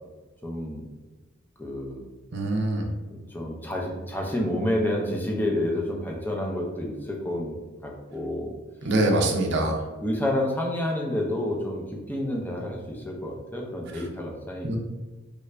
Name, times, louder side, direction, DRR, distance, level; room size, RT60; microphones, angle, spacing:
voice 1, 0.4-0.9 1.6-2.0 3.1-8.5 8.8-8.9 10.0-14.8, left 1 dB, 10° left, -1 dB, 0.5 m, -29 dB
voice 2, 2.3-2.9 8.8-9.8 14.6-14.8, right 2 dB, 55° right, 2 dB, 0.5 m, -24 dB
3.2 x 2.5 x 3.2 m, 1.2 s
head